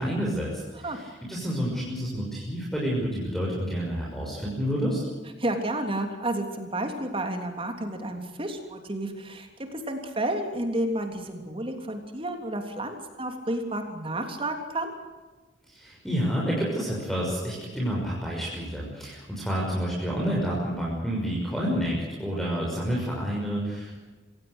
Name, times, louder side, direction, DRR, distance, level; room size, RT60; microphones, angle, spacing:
voice 1, 0.0-5.0 15.7-24.0, equal, ahead, -4 dB, 6.1 m, -29 dB
voice 2, 5.4-14.9, right 1 dB, 30° right, 5 dB, 3.2 m, -31 dB
26.0 x 17.5 x 8.1 m, 1.3 s
head